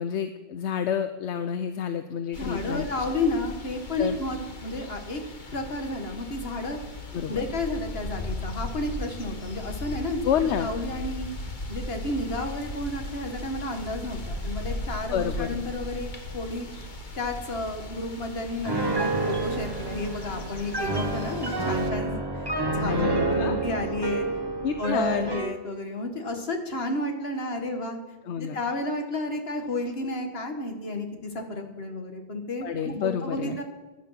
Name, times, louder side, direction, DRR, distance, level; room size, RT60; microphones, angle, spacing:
voice 1, 0.0-3.0 4.0-4.2 7.1-7.4 10.2-10.7 15.1-15.6 22.8-23.6 24.6-25.3 28.3-28.6 32.6-33.6, left 8 dB, 80° left, 10 dB, 1.0 m, -29 dB
sound 1, 2.3-21.9, left 1 dB, 45° left, 1.5 m, -38 dB
voice 2, 2.4-5.2 5.5-6.8 7.3-11.3 11.7-16.1 16.3-16.7 17.2-24.2 24.8-28.0 28.5-33.6, left 2 dB, 60° left, 5 dB, 2.0 m, -31 dB
Piano, 18.7-25.6, right 3 dB, 20° right, 1.6 m, -29 dB
15.0 x 11.0 x 5.8 m, 1.2 s
omnidirectional pair, 1.2 m